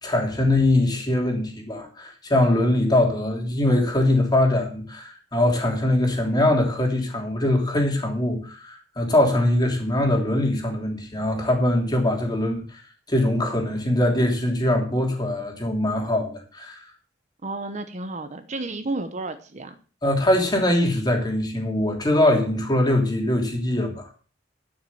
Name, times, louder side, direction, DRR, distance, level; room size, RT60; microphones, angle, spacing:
voice 1, 0.0-12.8 13.1-16.8 20.0-24.1, left 1 dB, 20° left, 3.0 m, -22 dB
voice 2, 17.4-19.7, right 2 dB, 40° right, 1.0 m, -31 dB
12.0 x 6.3 x 7.2 m
head